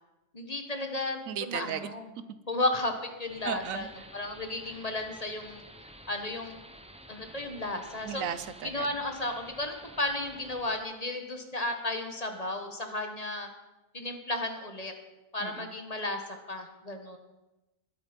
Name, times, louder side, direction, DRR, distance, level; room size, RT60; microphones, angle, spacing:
voice 1, 0.3-2.1 2.5-3.9 4.1-5.6 6.1-6.6 7.1-8.2 8.6-13.5 13.9-14.9 15.3-16.2 16.5-17.2, left 2 dB, 30° left, 5 dB, 1.5 m, -33 dB
voice 2, 1.3-1.9 3.4-4.1 8.0-8.9 15.4-15.7, right 8 dB, 85° right, 13 dB, 1.2 m, -35 dB
sound 1, 3.3-10.8, right 1 dB, 5° right, 0.7 m, -51 dB
21.0 x 8.5 x 5.3 m, 1.0 s
omnidirectional pair, 1.4 m